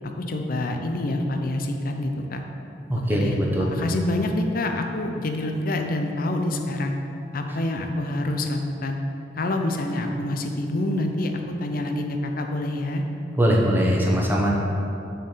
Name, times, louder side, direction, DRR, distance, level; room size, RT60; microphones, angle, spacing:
voice 1, 0.2-2.4 2.9-6.9 7.3-9.0 9.3-13.0, left 1 dB, 55° left, 4 dB, 0.6 m, -27 dB
voice 2, 2.9-3.6 13.4-14.5, equal, 10° right, -3 dB, 1.0 m, -21 dB
6.4 x 4.6 x 6.7 m, 2.7 s
head